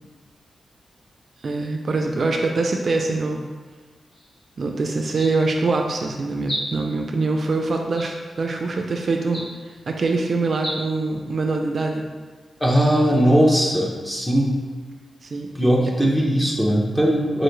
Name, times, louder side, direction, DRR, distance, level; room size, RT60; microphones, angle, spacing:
voice 1, 1.4-3.4 4.6-9.4 9.9-12.1 15.2-15.5, right 3 dB, 50° right, 2 dB, 0.3 m, -24 dB
sound 1, 4.1-4.4 5.0-5.7 6.4-7.0 7.9-8.5 9.2-9.8 10.5-10.8, equal, 35° left, 1.0 m, -34 dB
voice 2, 12.6-14.6 15.5-17.4, equal, 5° left, -2 dB, 0.6 m, -19 dB
4.6 x 2.5 x 3.1 m, 1.4 s
wide cardioid pair, 120°, 0 cm